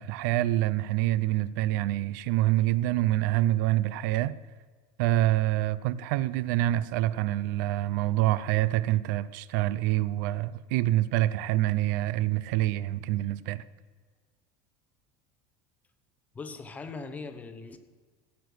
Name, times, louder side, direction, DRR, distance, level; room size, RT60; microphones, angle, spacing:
voice 1, 0.0-4.4 5.0-13.6, right 15 dB, 60° right, 0.5 m, -26 dB
voice 2, 16.3-17.8, left 4 dB, 15° left, 0.7 m, -40 dB
15.5 x 8.4 x 6.4 m
cardioid pair, 175°, 11 cm